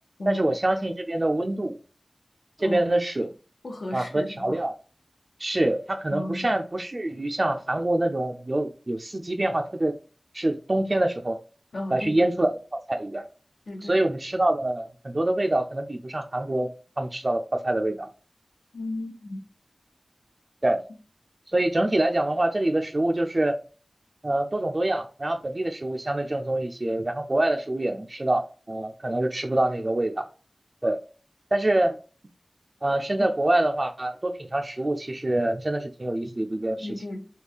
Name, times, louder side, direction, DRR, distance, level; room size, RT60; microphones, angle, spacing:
voice 1, 0.2-1.8 2.6-3.4 3.9-4.7 5.4-9.9 10.3-11.4 11.9-12.5 12.9-13.2 13.8-16.7 17.0-18.1 20.6-20.8 21.5-23.5 24.2-30.3 30.8-31.0 31.5-32.0 32.8-37.0, right 1 dB, 40° right, 3 dB, 0.3 m, -25 dB
voice 2, 3.6-4.6 6.1-6.5 11.7-12.3 13.7-14.0 18.7-19.4 36.8-37.3, left 1 dB, 85° left, 1 dB, 0.8 m, -34 dB
3.3 x 2.3 x 3.4 m, 0.36 s
wide cardioid pair, 65°, 0 cm